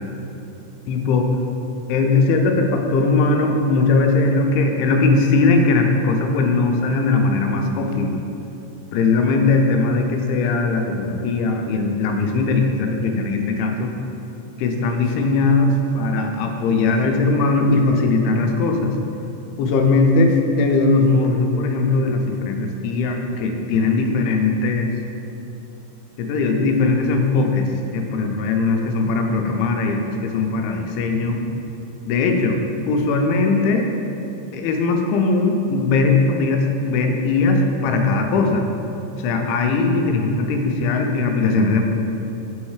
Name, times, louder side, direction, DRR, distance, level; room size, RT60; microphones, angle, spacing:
voice 1, 0.9-1.3 1.9-8.2 8.9-13.9 14.6-18.9 19.6-24.9 26.2-27.7 27.9-31.4 32.0-32.6 32.9-33.9 34.5-38.7 39.2-41.8, left 3 dB, 85° left, 3 dB, 2.5 m, -19 dB
6.4 x 3.1 x 4.8 m, 2.9 s
omnidirectional pair, 4.4 m